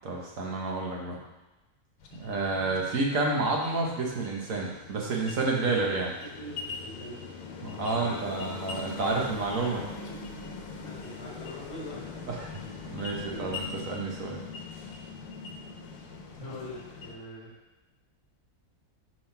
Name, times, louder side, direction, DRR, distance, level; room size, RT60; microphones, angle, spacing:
voice 1, 0.0-1.2 2.1-6.1 7.6-9.8 12.3-12.6 12.9-14.4, right 3 dB, 65° right, -1 dB, 1.4 m, -30 dB
sound 1, 2.0-17.1, left 5 dB, 85° left, 1.3 m, -42 dB
voice 2, 5.4-5.8 6.2-7.2 7.9-8.7 9.5-10.2 10.8-12.1 13.3-13.5 16.4-17.6, left 1 dB, 55° left, -4 dB, 1.8 m, -42 dB
5.3 x 3.5 x 5.6 m, 1.0 s
omnidirectional pair, 1.6 m